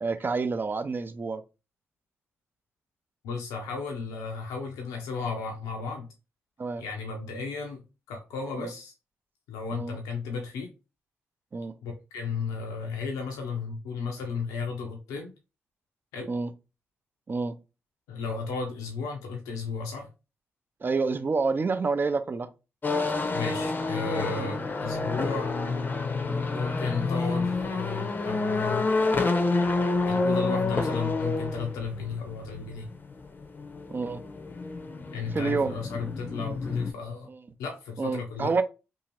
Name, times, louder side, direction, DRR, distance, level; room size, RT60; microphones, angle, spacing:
voice 1, 0.0-1.4 6.6-6.8 8.6-8.7 9.7-10.0 11.5-11.7 16.3-16.5 17.3-17.6 20.8-22.5 24.4-24.5 26.2-26.5 33.9-34.2 35.3-35.7 37.3-37.4 38.0-38.6, right 4 dB, 40° right, 0.4 m, -28 dB
voice 2, 3.2-6.1 6.8-7.8 8.1-8.9 9.5-10.7 11.8-15.3 16.1-16.3 18.1-20.1 23.3-25.5 26.5-28.9 30.1-32.9 35.1-37.3 37.6-38.5, left 5 dB, 85° left, 0.5 m, -34 dB
sound 1, 22.8-36.9, left 3 dB, 35° left, 0.6 m, -29 dB
2.7 x 2.4 x 3.1 m
supercardioid pair, 45°, 6 cm